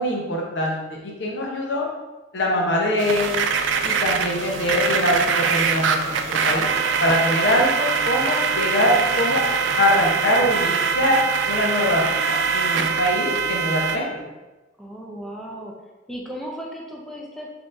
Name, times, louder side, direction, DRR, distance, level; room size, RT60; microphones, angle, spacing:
voice 1, 0.0-1.9 2.3-3.4 3.8-6.7 7.0-9.4 9.8-11.2 11.5-14.3, left 1 dB, 70° left, -1 dB, 0.8 m, -23 dB
sound 1, 3.0-14.0, right 5 dB, 85° right, 0.3 m, -23 dB
sound 2, 4.5-12.1, right 1 dB, 35° right, 1.1 m, -40 dB
voice 2, 14.8-15.7 16.1-17.5, equal, ahead, -2 dB, 0.4 m, -35 dB
4.2 x 2.9 x 2.5 m, 1.1 s
head